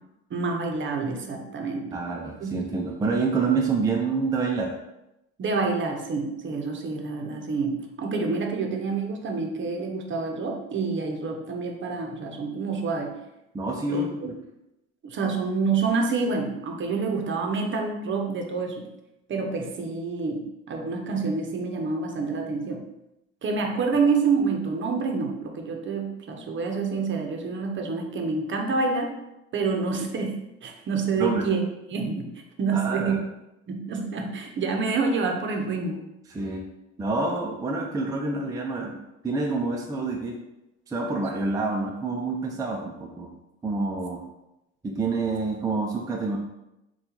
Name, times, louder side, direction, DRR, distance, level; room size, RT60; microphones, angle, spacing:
voice 1, 0.3-2.0 2.4-2.7 5.4-13.1 13.9-14.3 15.0-18.9 19.3-20.4 20.7-22.8 23.4-29.1 29.5-31.6 31.9-32.3 32.6-33.2 33.7-36.0, right 4 dB, 40° right, 3 dB, 0.7 m, -27 dB
voice 2, 1.9-4.7 13.5-14.3 31.2-31.5 32.7-33.2 36.3-36.6 37.0-39.0 39.2-40.4 40.9-43.3 43.6-44.2 44.8-46.4, right 3 dB, 10° right, -1 dB, 0.4 m, -27 dB
4.3 x 2.4 x 3.9 m, 0.90 s
cardioid pair, 110°, 30 cm